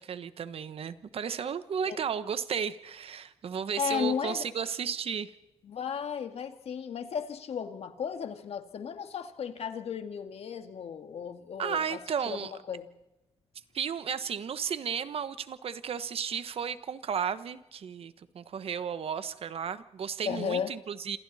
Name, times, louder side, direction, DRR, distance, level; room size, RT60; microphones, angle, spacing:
voice 1, 0.0-5.3 11.6-12.5 13.7-21.2, right 7 dB, 60° right, 13 dB, 1.3 m, -34 dB
voice 2, 3.8-4.5 5.6-12.0 12.3-12.9 20.2-20.7, left 7 dB, 70° left, 7 dB, 2.2 m, -35 dB
28.0 x 27.0 x 4.3 m, 0.93 s
cardioid pair, 115°, 11 cm